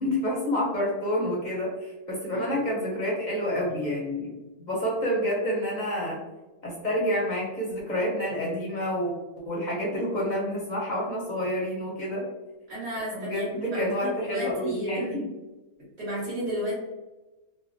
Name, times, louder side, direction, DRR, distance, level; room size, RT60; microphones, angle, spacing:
voice 1, 0.0-4.4 4.7-6.2 6.6-9.1 9.5-12.2 13.1-15.3, equal, 45° left, -4 dB, 0.6 m, -28 dB
voice 2, 12.7-13.9 14.2-15.1 16.0-16.7, right 1 dB, 55° right, -7 dB, 1.7 m, -32 dB
3.2 x 2.1 x 2.5 m, 1.1 s
omnidirectional pair, 1.5 m